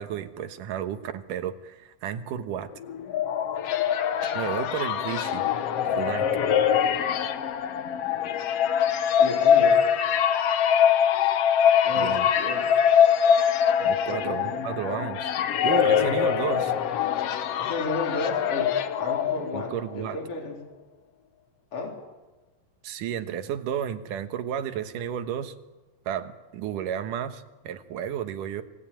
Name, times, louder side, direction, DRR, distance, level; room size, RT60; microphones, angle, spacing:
voice 1, 0.0-2.7 4.3-5.4 5.9-6.3 12.0-12.3 13.8-15.2 15.6-16.7 19.5-20.2 22.8-25.5 26.1-28.6, right 9 dB, 70° right, 9 dB, 2.7 m, -32 dB
sound 1, 2.8-19.8, left 8 dB, 65° left, 1.5 m, -23 dB
voice 2, 9.1-9.9 11.8-12.7 13.8-15.0 17.5-20.6 21.7-22.0, left 2 dB, 40° left, 1 dB, 4.5 m, -33 dB
26.0 x 17.5 x 9.0 m, 1.2 s
omnidirectional pair, 4.1 m